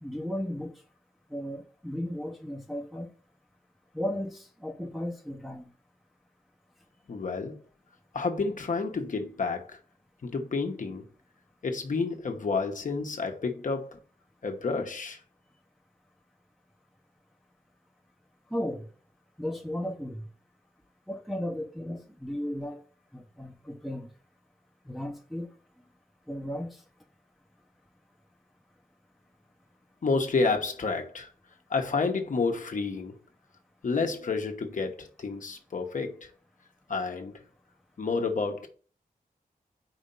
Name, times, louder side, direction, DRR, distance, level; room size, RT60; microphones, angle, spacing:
voice 1, 0.0-0.7 1.3-3.1 3.9-5.7 18.5-18.8 19.4-20.2 21.1-22.8 23.1-24.1 24.9-25.5 26.3-26.8, left 1 dB, ahead, 0.7 m, -35 dB
voice 2, 7.1-7.6 8.1-9.8 10.2-11.1 11.6-14.0 14.4-15.2 30.0-31.3 31.7-33.2 33.8-36.3 36.9-37.4 38.0-38.7, left 4 dB, 60° left, 1.1 m, -30 dB
4.9 x 4.4 x 5.3 m
wide cardioid pair, 105°, 15 cm